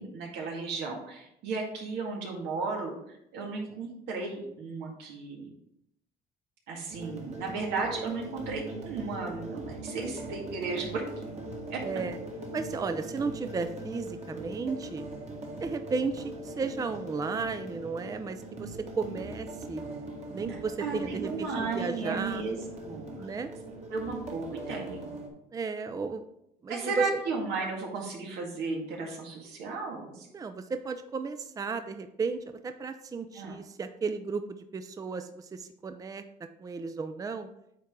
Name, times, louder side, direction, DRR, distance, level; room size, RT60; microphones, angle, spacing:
voice 1, 0.0-5.5 6.7-11.0 11.7-11.8 12.7-12.9 20.8-23.4 23.9-25.1 26.7-30.4 33.3-33.6, right 4 dB, 85° right, 0 dB, 1.9 m, -35 dB
sound 1, 6.9-25.3, right 1 dB, 40° right, 1.6 m, -41 dB
voice 2, 11.8-12.2 12.5-15.0 15.6-19.8 20.3-22.4 23.2-23.5 25.5-26.2 26.6-27.1 30.3-34.4 34.7-36.2 36.6-37.5, right 4 dB, 20° right, 9 dB, 0.4 m, -34 dB
8.5 x 4.3 x 3.7 m, 0.78 s
cardioid pair, 110°, 17 cm